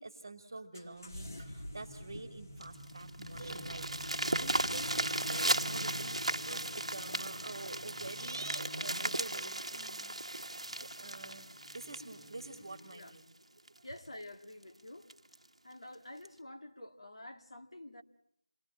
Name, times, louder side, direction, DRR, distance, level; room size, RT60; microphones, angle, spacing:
voice 1, 0.0-3.9 4.1-10.1 10.7-11.5 11.7-13.2 13.7-13.8, right 2 dB, 25° right, 2.1 m, -47 dB
sound 1, 0.7-12.9, equal, 25° left, 1.8 m, -47 dB
sound 2, 2.6-13.1 13.7-13.8 14.2-14.3 14.6-14.7 15.1-15.4 16.2-16.3, right 1 dB, 60° right, 1.4 m, -36 dB
voice 2, 13.8-15.1 15.6-18.0, left 1 dB, 45° left, 2.2 m, -49 dB
28.0 x 20.5 x 8.8 m
figure-of-eight pair, 175°, 4 cm